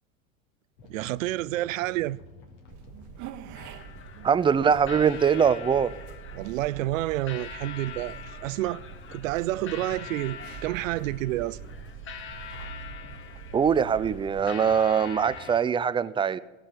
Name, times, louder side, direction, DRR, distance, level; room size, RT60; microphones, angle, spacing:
sound 1, 0.8-15.4, left 2 dB, 60° left, 2.9 m, -50 dB
voice 1, 0.9-2.2 6.3-8.8 9.1-11.6, right 16 dB, 75° right, 0.6 m, -29 dB
sound 2, 2.7-14.5, right 8 dB, 45° right, 1.1 m, -44 dB
sound 3, 3.5-15.6, left 7 dB, 30° left, 1.3 m, -44 dB
voice 2, 4.2-5.9 13.5-16.4, right 7 dB, 15° right, 0.4 m, -22 dB
17.5 x 6.2 x 9.4 m
hypercardioid pair, 90°, 40 cm